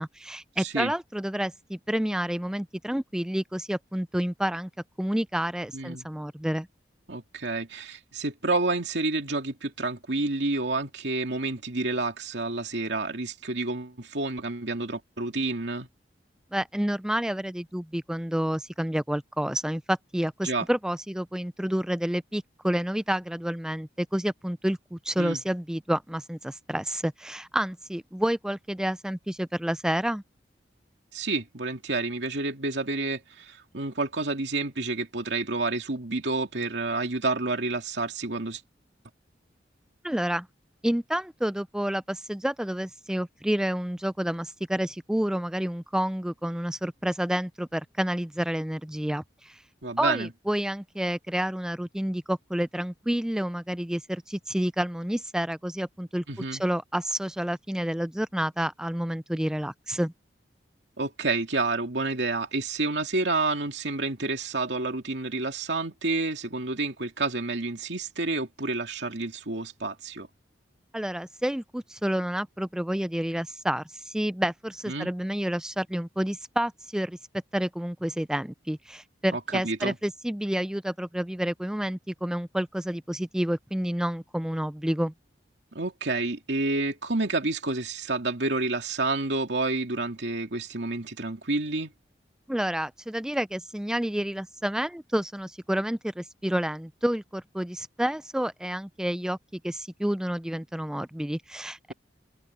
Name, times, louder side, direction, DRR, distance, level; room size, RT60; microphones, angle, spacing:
voice 1, 0.0-4.7 5.0-6.7 16.5-30.2 40.0-40.5 40.8-49.6 50.0-56.2 56.5-60.1 70.9-77.2 77.5-85.1 92.5-99.4 99.6-101.9, equal, 5° right, 0.3 m, -29 dB
voice 2, 0.6-0.9 5.7-6.0 7.1-15.9 20.4-20.6 25.2-25.4 31.1-38.6 49.8-50.3 56.3-56.6 61.0-70.3 74.9-75.1 79.3-79.9 85.7-91.9, right 3 dB, 80° right, 2.5 m, -29 dB
head